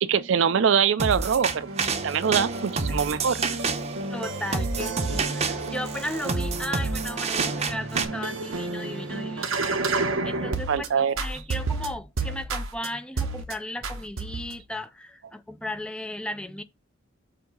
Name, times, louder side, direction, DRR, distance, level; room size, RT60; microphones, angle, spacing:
voice 1, 0.0-1.7 2.0-3.4 10.7-11.2, right 7 dB, 65° right, 0.4 m, -23 dB
sound 1, 1.0-8.0, right 4 dB, 35° right, 0.7 m, -29 dB
sound 2, 1.1-10.9 11.2-12.9 13.2-13.5 13.8-14.6, right 3 dB, 90° right, 0.9 m, -31 dB
voice 2, 4.1-9.6 9.9-16.6, left 1 dB, 5° left, 0.4 m, -36 dB
6.7 x 2.8 x 5.4 m
head